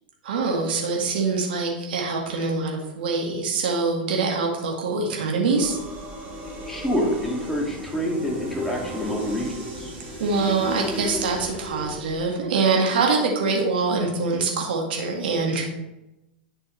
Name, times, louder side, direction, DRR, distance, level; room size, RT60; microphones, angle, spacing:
voice 1, 0.2-5.8 10.2-15.7, right 4 dB, 75° right, 0 dB, 1.9 m, -24 dB
sound 1, 5.5-12.4, equal, 30° right, 2.9 m, -35 dB
voice 2, 6.7-9.9, equal, 5° left, -2 dB, 2.3 m, -27 dB
10.5 x 6.1 x 3.3 m, 0.93 s
hypercardioid pair, 105°, 5 cm